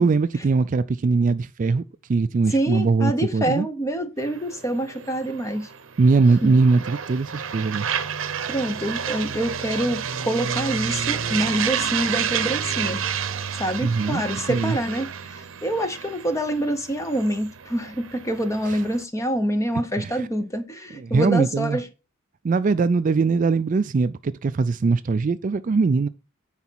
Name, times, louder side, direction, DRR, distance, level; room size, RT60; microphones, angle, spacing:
voice 1, 0.0-1.8 2.1-3.7 6.0-7.9 13.8-14.2 14.5-14.8 18.6-18.8 20.0-20.3 21.0-21.8 22.4-26.1, right 4 dB, 40° right, 0.3 m, -21 dB
voice 2, 2.5-5.7 6.4-6.5 8.5-13.1 13.5-21.8, right 1 dB, 15° left, 0.9 m, -26 dB
sound 1, 4.2-19.0, right 7 dB, 65° right, 0.8 m, -30 dB
9.6 x 4.0 x 4.6 m
head